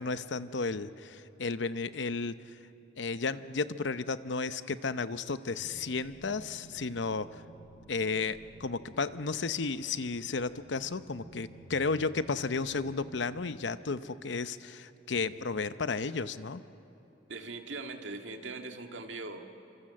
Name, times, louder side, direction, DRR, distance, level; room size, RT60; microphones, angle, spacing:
voice 1, 0.0-2.3 3.0-7.4 7.9-16.6, left 4 dB, 75° left, 13 dB, 0.7 m, -33 dB
sound 1, 5.6-13.5, right 1 dB, 15° right, 5.1 m, -54 dB
voice 2, 17.3-19.4, right 3 dB, 85° right, 4 dB, 1.9 m, -40 dB
27.5 x 25.5 x 7.6 m, 2.9 s
head